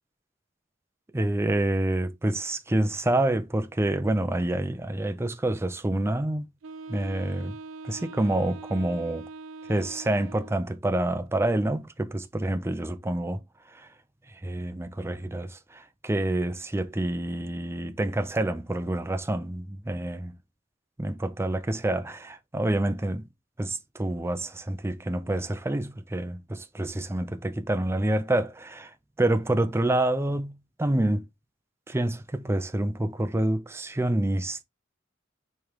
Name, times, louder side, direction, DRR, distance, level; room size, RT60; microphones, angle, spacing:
voice 1, 1.1-6.4 6.9-7.6 7.8-9.2 9.7-13.4 13.7-13.9 14.3-20.3 21.0-23.3 23.6-31.2 31.9-34.6, right 1 dB, 15° right, 0.5 m, -27 dB
Wind instrument woodwind instrument, 6.6-10.7, right 3 dB, 80° right, 0.3 m, -42 dB
4.6 x 3.3 x 3.5 m
head